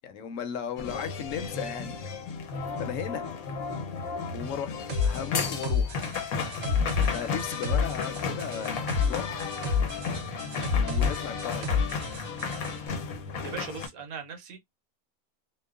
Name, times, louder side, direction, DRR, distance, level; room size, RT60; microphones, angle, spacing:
voice 1, 0.0-2.1 2.8-3.3 4.3-6.0 7.1-9.3 10.7-11.7, left 7 dB, 70° left, 0.9 m, -36 dB
sound 1, 0.8-13.9, left 5 dB, 90° left, 1.2 m, -34 dB
sound 2, 4.9-12.8, left 5 dB, 65° right, 1.0 m, -29 dB
voice 2, 12.4-13.0 13.4-14.6, right 6 dB, 80° right, 1.3 m, -40 dB
2.9 x 2.1 x 2.3 m
omnidirectional pair, 1.5 m